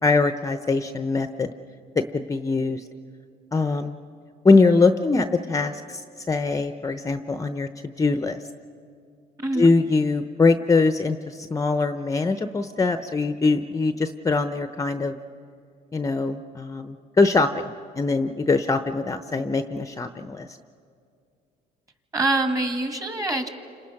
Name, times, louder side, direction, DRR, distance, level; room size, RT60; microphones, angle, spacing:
voice 1, 0.0-1.5 2.1-2.8 3.5-4.0 4.4-8.4 9.5-15.2 15.9-20.5, left 3 dB, 20° left, 9 dB, 0.8 m, -22 dB
voice 2, 9.4-9.7 22.1-23.5, right 2 dB, 20° right, 6 dB, 2.2 m, -24 dB
29.5 x 26.5 x 5.9 m, 2.4 s
cardioid pair, 110°, 17 cm